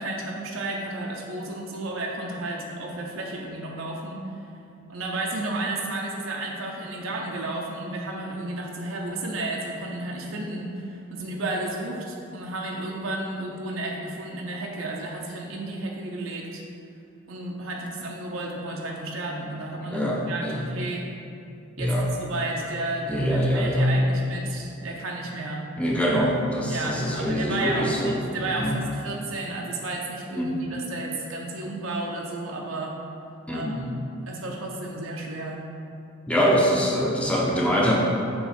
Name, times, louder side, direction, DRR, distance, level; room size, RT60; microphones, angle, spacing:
voice 1, 0.0-4.3 4.9-16.6 17.3-21.1 21.8-25.7 26.7-33.0 33.5-33.9 34.3-35.6, right 2 dB, 85° right, -1 dB, 0.7 m, -32 dB
voice 2, 19.9-20.7 21.8-22.1 23.1-23.9 25.8-28.2 28.6-28.8 30.4-30.6 33.5-33.8 36.3-37.9, equal, 5° left, -3 dB, 0.6 m, -24 dB
7.0 x 3.1 x 5.1 m, 2.6 s
head